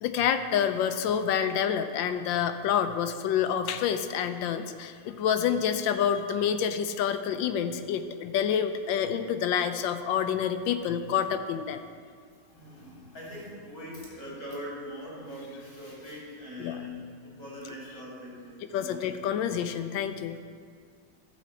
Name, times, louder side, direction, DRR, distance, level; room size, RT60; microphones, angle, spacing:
voice 1, 0.0-11.8 16.6-16.8 18.7-20.4, left 8 dB, 80° left, 9 dB, 1.3 m, -28 dB
voice 2, 12.5-19.1, left 1 dB, 60° left, -6 dB, 3.8 m, -42 dB
11.5 x 4.2 x 7.8 m, 2.1 s
omnidirectional pair, 2.1 m